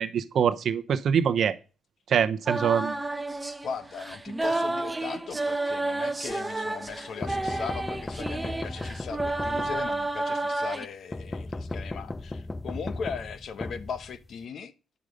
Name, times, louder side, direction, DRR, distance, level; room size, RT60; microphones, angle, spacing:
voice 1, 0.0-1.5 2.1-2.9, right 8 dB, 60° right, 0.8 m, -24 dB
sound 1, 2.5-10.9, right 2 dB, 10° right, 0.8 m, -31 dB
voice 2, 3.6-14.7, left 6 dB, 60° left, 0.9 m, -38 dB
sound 2, 7.2-10.2 11.1-14.4, left 2 dB, 20° left, 0.4 m, -36 dB
9.8 x 6.3 x 5.2 m
cardioid pair, 90°, 0 cm